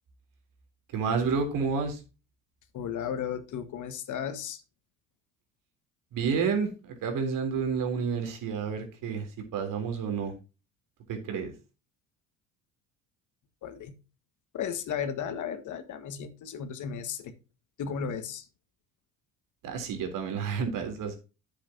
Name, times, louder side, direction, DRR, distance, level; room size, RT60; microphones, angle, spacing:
voice 1, 0.9-2.0 6.1-10.3 11.1-11.5 19.6-21.2, right 5 dB, 60° right, 5 dB, 3.6 m, -30 dB
voice 2, 2.7-4.6 13.6-13.9 14.5-17.3 17.8-18.5, left 7 dB, 55° left, 9 dB, 1.8 m, -34 dB
11.0 x 7.8 x 2.9 m, 0.31 s
hypercardioid pair, 65°, 37 cm